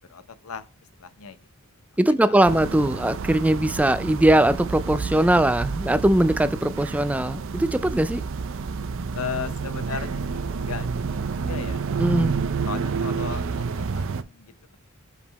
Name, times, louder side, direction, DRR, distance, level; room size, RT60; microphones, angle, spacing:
voice 1, 0.1-0.7 1.0-1.5 2.1-2.6 9.1-10.9 11.3-11.8 12.6-14.8, left 6 dB, 70° left, 0.6 m, -36 dB
voice 2, 2.0-8.2 12.0-12.3, right 1 dB, 5° right, 0.3 m, -20 dB
sound 1, 2.4-14.2, right 5 dB, 60° right, 0.5 m, -29 dB
5.5 x 4.9 x 4.0 m
head